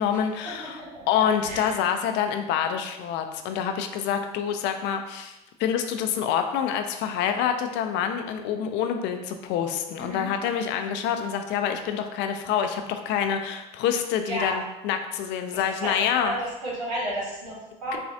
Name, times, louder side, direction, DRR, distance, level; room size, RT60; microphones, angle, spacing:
voice 1, 0.0-0.8 1.1-16.3 17.9-18.0, left 8 dB, 65° left, 6 dB, 0.5 m, -27 dB
voice 2, 0.8-1.7 10.0-10.3 14.3-14.6 15.5-16.4 16.6-18.0, right 1 dB, 90° right, -5 dB, 1.2 m, -33 dB
4.2 x 2.3 x 2.7 m, 0.98 s
hypercardioid pair, 80°, 20 cm